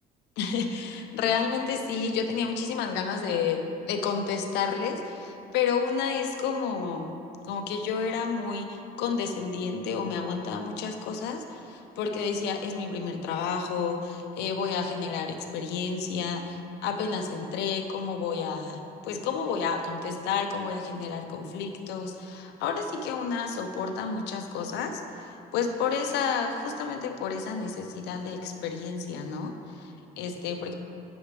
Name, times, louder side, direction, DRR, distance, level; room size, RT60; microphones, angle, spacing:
voice 1, 0.4-7.2 7.4-30.7, left 5 dB, 85° left, 5 dB, 0.7 m, -30 dB
9.7 x 7.0 x 3.4 m, 2.7 s
cardioid pair, 110°, 17 cm